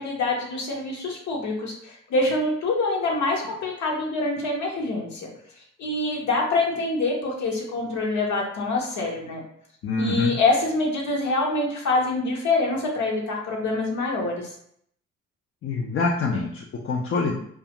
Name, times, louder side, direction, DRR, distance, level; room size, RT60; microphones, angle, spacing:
voice 1, 0.0-5.3 5.8-9.4 10.0-14.5, left 2 dB, 65° left, 0 dB, 0.8 m, -25 dB
voice 2, 9.8-10.4 15.6-17.3, left 3 dB, 45° left, -2 dB, 0.5 m, -25 dB
2.4 x 2.3 x 2.8 m, 0.68 s
cardioid pair, 90°, 30 cm